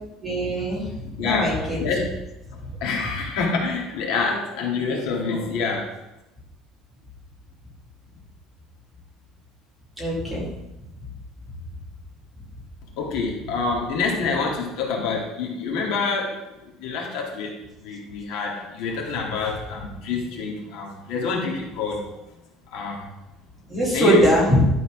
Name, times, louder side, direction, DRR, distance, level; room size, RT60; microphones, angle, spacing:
voice 1, 0.2-1.8 2.6-2.7 10.0-10.5 23.7-24.7, equal, 5° right, -5 dB, 2.1 m, -21 dB
voice 2, 1.2-1.5 1.8-2.1 2.8-5.9 13.0-16.4 16.6-17.6 17.8-22.1 22.7-23.1 23.9-24.2, left 4 dB, 65° left, -1 dB, 2.1 m, -27 dB
11.5 x 4.2 x 5.0 m, 0.96 s
cardioid pair, 180°, 0 cm